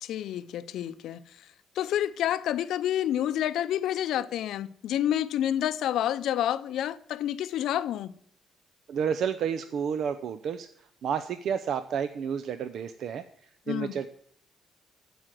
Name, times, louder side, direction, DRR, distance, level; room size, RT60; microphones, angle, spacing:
voice 1, 0.0-1.2 1.8-8.1 13.7-14.0, left 11 dB, 80° left, 0.5 m, -29 dB
voice 2, 8.9-10.7 11.0-13.2 13.7-14.1, right 7 dB, 70° right, 0.5 m, -30 dB
14.0 x 5.0 x 7.5 m
cardioid pair, 90°, 0 cm